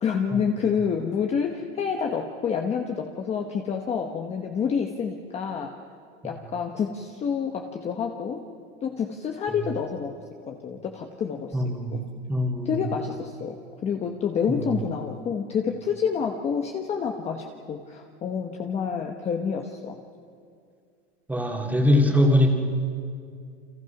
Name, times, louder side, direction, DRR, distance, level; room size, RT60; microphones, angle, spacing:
voice 1, 0.0-5.7 6.2-8.4 8.8-10.1 10.5-11.6 11.9-12.0 12.6-13.5 13.8-20.0, left 6 dB, 20° left, 3 dB, 1.1 m, -28 dB
voice 2, 11.5-12.7 14.5-14.6 21.3-22.5, left 1 dB, 5° right, 1 dB, 2.5 m, -22 dB
29.5 x 25.5 x 6.0 m, 2.3 s
supercardioid pair, 155°, 33 cm